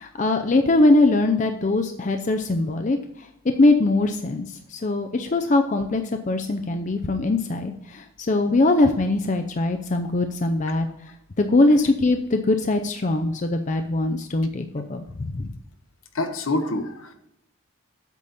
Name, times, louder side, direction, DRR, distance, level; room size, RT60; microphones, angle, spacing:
voice 1, 0.0-10.9 11.4-15.5, left 2 dB, 35° left, 6 dB, 0.5 m, -22 dB
voice 2, 16.1-17.1, left 2 dB, 75° left, 7 dB, 1.0 m, -26 dB
8.3 x 4.1 x 6.9 m, 0.82 s
head